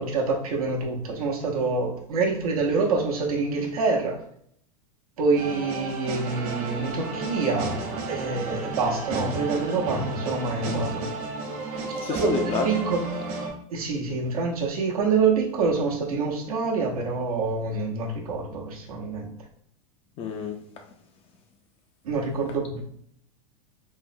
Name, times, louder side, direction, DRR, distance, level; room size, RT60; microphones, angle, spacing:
voice 1, 0.0-4.2 5.2-7.7 8.1-11.0 11.7-11.8 12.1-12.2 12.6-13.0 13.7-19.3 22.0-22.8, right 4 dB, 85° right, 0.9 m, -26 dB
sound 1, 5.4-13.5, right 3 dB, 50° right, 1.0 m, -32 dB
voice 2, 11.7-12.8 20.2-20.9, left 5 dB, 35° left, 0.4 m, -30 dB
3.7 x 2.0 x 2.6 m
hypercardioid pair, 115°, 18 cm